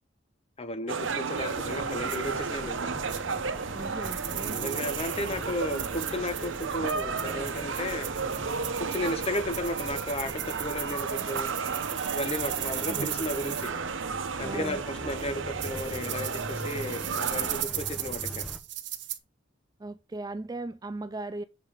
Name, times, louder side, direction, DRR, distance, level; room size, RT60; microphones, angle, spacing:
voice 1, 0.6-2.9 4.5-8.1 8.8-11.5 12.1-13.7 14.4-18.5, left 1 dB, 30° left, 0.9 m, -34 dB
sound 1, 0.9-17.6, right 5 dB, 90° right, 0.8 m, -33 dB
sound 2, 1.3-18.6, equal, ahead, 0.9 m, -43 dB
sound 3, 2.1-2.2 3.1-3.2 4.0-13.7 15.2-15.3 15.6-19.2, right 13 dB, 65° right, 1.1 m, -37 dB
voice 2, 3.7-4.6 12.9-13.1 14.4-14.8 19.8-21.4, right 2 dB, 20° right, 0.4 m, -37 dB
6.9 x 5.5 x 4.8 m
head